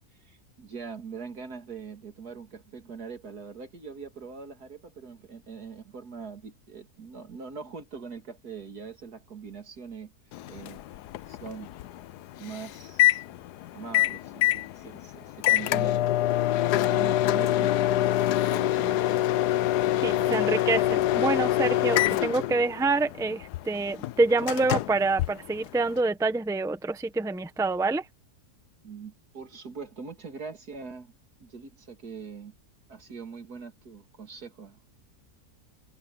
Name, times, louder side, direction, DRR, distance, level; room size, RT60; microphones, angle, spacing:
voice 1, 0.2-10.1 10.5-10.9 11.3-11.8 12.4-13.2 13.7-16.2 16.6-19.2 20.1-20.3 28.8-31.1 31.4-32.5 32.9-35.0, right 5 dB, 70° right, 2.9 m, -42 dB
Microwave oven, 10.3-26.0, left 14 dB, 80° left, 1.2 m, -26 dB
voice 2, 20.0-28.0, right 3 dB, 5° right, 0.9 m, -26 dB
omnidirectional pair, 1.7 m